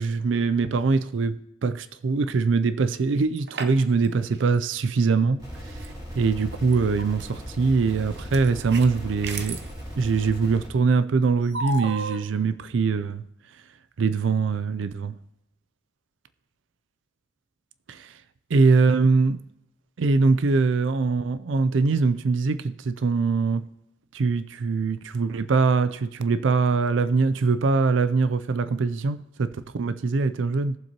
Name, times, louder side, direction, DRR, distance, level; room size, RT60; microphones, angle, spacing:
voice 1, 0.0-5.9 6.2-9.6 10.0-13.3 14.0-15.2 17.9-18.1 18.5-19.4 20.0-23.7 24.1-30.8, right 4 dB, 80° right, 0.4 m, -23 dB
sound 1, 3.1-4.1 4.3-4.5 5.8-5.9 6.7-7.2 8.1-9.7 11.5-12.2, right 3 dB, 60° right, 0.8 m, -34 dB
sound 2, 5.4-10.7, equal, 20° right, 4.1 m, -38 dB
18.0 x 7.3 x 2.9 m
head